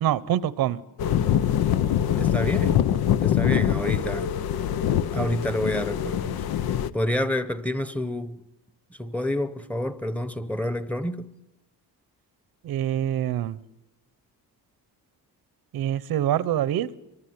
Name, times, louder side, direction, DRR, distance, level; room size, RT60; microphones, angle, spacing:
voice 1, 0.0-0.8 12.6-13.6 15.7-16.9, right 11 dB, 80° right, 1.0 m, -25 dB
sound 1, 1.0-6.9, left 10 dB, 90° left, 1.0 m, -24 dB
voice 2, 2.2-2.8 3.2-4.3 5.1-6.4 6.9-8.4 8.9-11.3, left 1 dB, 5° left, 0.9 m, -28 dB
26.0 x 23.5 x 9.5 m
cardioid pair, 150°, 36 cm